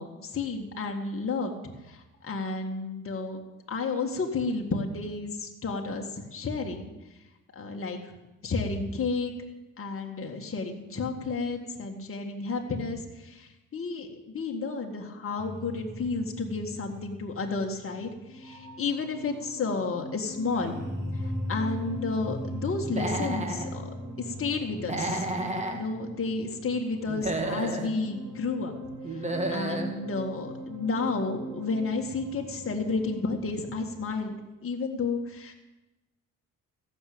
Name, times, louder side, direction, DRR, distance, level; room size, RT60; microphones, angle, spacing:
voice 1, 0.0-1.6 1.9-3.4 3.7-6.9 7.6-8.1 8.4-9.3 9.8-14.1 14.3-20.8 21.2-23.8 24.2-25.2 25.7-28.7 29.2-35.5, left 3 dB, 40° left, 1 dB, 1.9 m, -31 dB
sound 1, 15.4-34.2, equal, 60° right, 3.3 m, -39 dB
Human voice / Animal, 22.8-23.7 24.8-25.8 27.1-27.9 29.0-29.9, right 2 dB, 20° right, 2.1 m, -31 dB
15.0 x 6.6 x 8.6 m, 1.0 s
cardioid pair, 70°, 34 cm